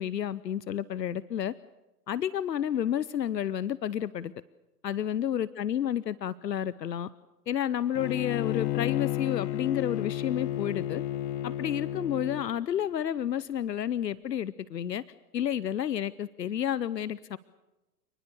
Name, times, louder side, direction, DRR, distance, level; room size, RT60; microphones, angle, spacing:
voice 1, 0.0-1.5 2.1-4.3 4.8-7.1 7.5-11.0 11.4-15.0 15.3-17.4, left 10 dB, 80° left, 19 dB, 0.8 m, -30 dB
Bowed string instrument, 8.0-12.5, left 13 dB, 40° left, 1.5 m, -32 dB
28.5 x 20.0 x 6.9 m, 1.0 s
hypercardioid pair, 115°, 49 cm